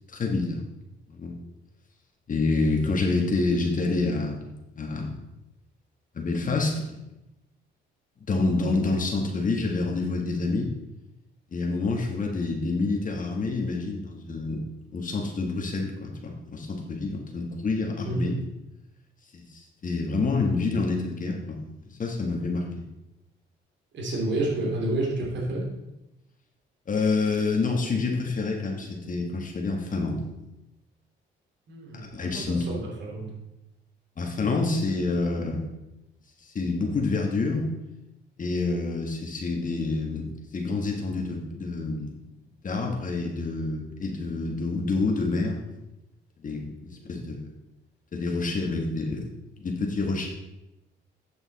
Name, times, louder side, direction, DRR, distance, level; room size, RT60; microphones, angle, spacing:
voice 1, 0.1-0.6 1.1-1.3 2.3-4.5 4.8-5.2 6.2-6.9 8.3-10.7 11.5-14.7 14.9-18.3 19.3-22.9 26.9-30.2 32.1-32.7 34.2-35.6 36.4-37.7 38.4-42.1 42.6-45.6 46.4-47.5 48.1-49.3 49.6-50.3, left 3 dB, 40° left, 1 dB, 1.6 m, -27 dB
voice 2, 23.9-25.7 31.7-33.3 46.9-47.2, right 2 dB, 65° right, -2 dB, 2.9 m, -30 dB
8.5 x 6.9 x 4.2 m, 0.94 s
cardioid pair, 90°, 20 cm